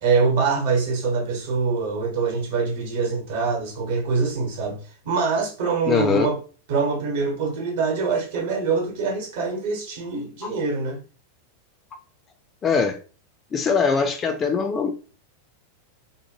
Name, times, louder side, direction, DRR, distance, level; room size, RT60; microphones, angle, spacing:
voice 1, 0.0-4.8 5.0-6.4 6.7-11.0, right 4 dB, 55° right, 1.1 m, -24 dB
voice 2, 5.9-6.3 12.6-13.0 13.5-14.9, left 5 dB, 25° left, 0.5 m, -21 dB
3.0 x 2.2 x 2.9 m
figure-of-eight pair, 90°, 0 cm